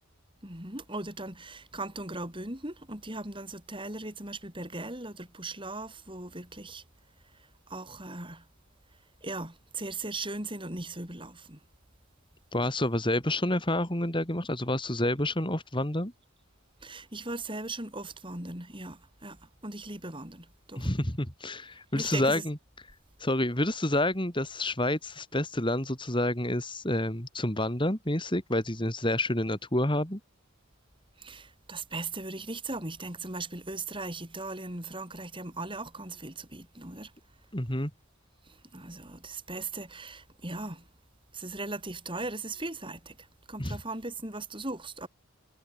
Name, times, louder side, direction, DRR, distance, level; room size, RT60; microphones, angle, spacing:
voice 1, 0.4-6.8 7.2-8.5 9.2-11.6 16.8-20.9 21.7-22.5 31.2-37.1 38.4-40.9 41.3-45.1, right 2 dB, 20° right, 7.2 m, -38 dB
voice 2, 12.5-16.1 20.8-22.5 23.2-30.2 37.5-37.9 43.6-43.8, left 1 dB, 20° left, 3.3 m, -28 dB
head